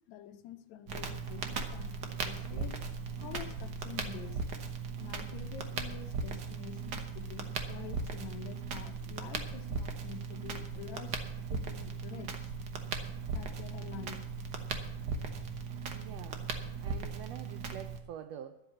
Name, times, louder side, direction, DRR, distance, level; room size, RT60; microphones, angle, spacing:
voice 1, 0.1-2.7 3.2-4.4 5.0-11.2 11.5-12.5 13.3-14.3 14.9-15.6, left 10 dB, 75° left, 6 dB, 2.0 m, -47 dB
Crackle, 0.9-18.0, right 5 dB, 65° right, 1.0 m, -38 dB
voice 2, 15.9-16.5 16.8-18.6, right 10 dB, 90° right, 9 dB, 1.4 m, -46 dB
12.5 x 7.9 x 7.1 m, 0.86 s
omnidirectional pair, 3.6 m